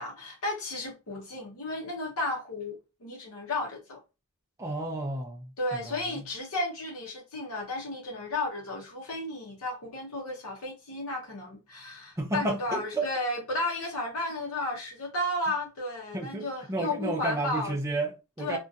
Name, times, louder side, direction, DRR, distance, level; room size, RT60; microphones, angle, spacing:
voice 1, 0.0-4.0 5.6-17.8 18.4-18.6, left 2 dB, 70° left, 0.7 m, -33 dB
voice 2, 4.6-5.5 5.7-6.3 12.2-13.1 16.1-18.6, right 2 dB, 15° right, 0.3 m, -32 dB
2.5 x 2.2 x 2.6 m
head